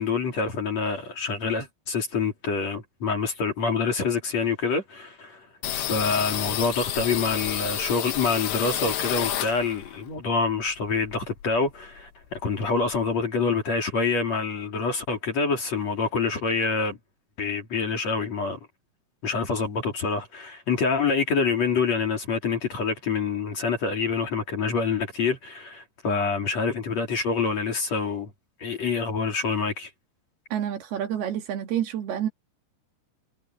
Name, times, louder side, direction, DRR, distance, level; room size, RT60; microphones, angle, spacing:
voice 1, 0.0-5.4 5.7-17.0 17.4-18.6 19.2-28.3 28.6-29.9, left 4 dB, 40° left, 4.1 m, -26 dB
sound 1, 5.6-10.0 10.3-11.7 12.0-12.1 12.3-13.1, left 11 dB, 80° left, 3.9 m, -30 dB
voice 2, 30.5-32.3, right 10 dB, 65° right, 3.9 m, -28 dB
omnidirectional pair, 5.1 m